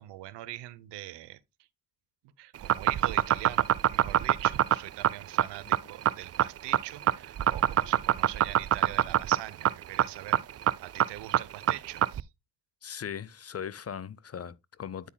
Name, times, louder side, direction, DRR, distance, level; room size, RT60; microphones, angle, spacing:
voice 1, 0.0-1.4 2.4-10.4 10.8-12.3, right 16 dB, 75° right, 0.8 m, -42 dB
sound 1, 2.6-12.2, right 11 dB, 40° right, 0.4 m, -24 dB
voice 2, 12.8-15.1, left 8 dB, 35° left, 0.6 m, -39 dB
9.2 x 8.1 x 2.2 m
hypercardioid pair, 45°, 42 cm